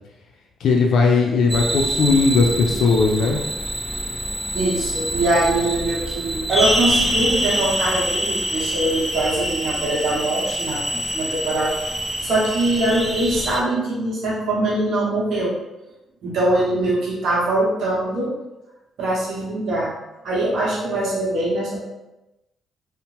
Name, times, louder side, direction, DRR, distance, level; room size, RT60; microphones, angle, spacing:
voice 1, 0.6-3.4, left 4 dB, 70° left, 0 dB, 0.4 m, -17 dB
sound 1, 1.5-13.6, equal, ahead, 0.4 m, -25 dB
voice 2, 4.5-11.7 12.2-15.5 16.2-18.3 19.0-19.9 20.2-21.9, right 1 dB, 70° right, -5 dB, 0.8 m, -22 dB
2.8 x 2.0 x 2.9 m, 0.97 s
cardioid pair, 90°, 0 cm